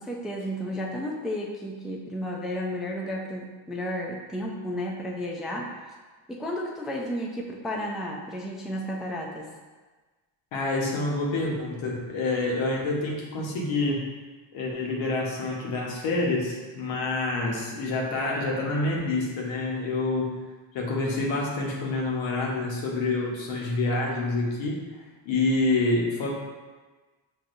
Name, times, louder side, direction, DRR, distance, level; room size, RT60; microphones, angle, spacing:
voice 1, 0.0-5.7 6.3-9.5, equal, ahead, -2 dB, 0.3 m, -32 dB
voice 2, 10.5-14.0 14.5-20.3 20.7-24.8 25.2-26.3, left 2 dB, 80° left, -2 dB, 1.1 m, -27 dB
6.2 x 2.7 x 2.6 m, 1.3 s
cardioid pair, 110°, 46 cm